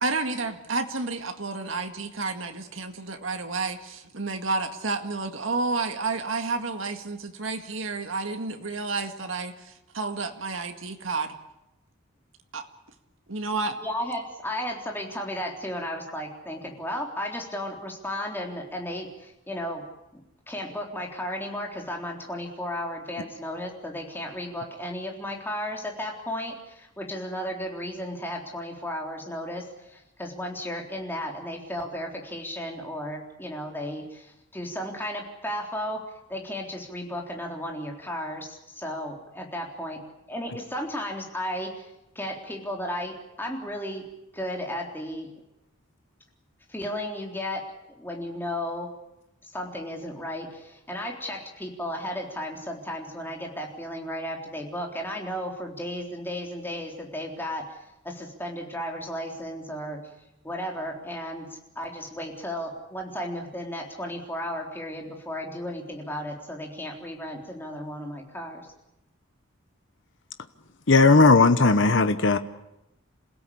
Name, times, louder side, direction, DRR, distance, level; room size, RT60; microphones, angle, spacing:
voice 1, 0.0-11.3 12.5-12.7 13.3-13.8, right 3 dB, 75° right, 1.9 m, -30 dB
voice 2, 13.8-19.8 20.5-36.0 36.3-40.0 40.3-41.9 42.2-44.0 44.3-45.3 46.7-47.6 48.0-48.9 49.5-57.8 58.0-60.0 60.4-68.7, equal, 10° left, 3.7 m, -34 dB
voice 3, 70.9-72.4, left 3 dB, 65° left, 1.0 m, -17 dB
27.5 x 16.5 x 8.6 m
head